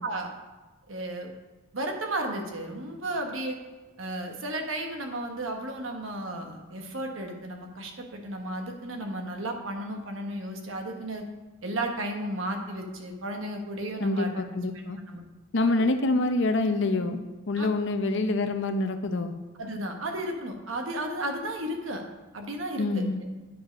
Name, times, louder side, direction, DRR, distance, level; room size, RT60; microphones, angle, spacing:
voice 1, 0.0-0.3 0.9-1.3 1.7-3.6 4.0-11.2 11.6-14.3 15.1-15.2 15.6-15.7 17.6-17.7 19.6-22.0 22.3-23.3, right 1 dB, 90° right, 3 dB, 1.2 m, -33 dB
voice 2, 14.0-15.0 15.5-19.3 22.8-23.2, left 2 dB, 65° left, 8 dB, 0.7 m, -26 dB
9.2 x 5.2 x 5.1 m, 1.2 s
head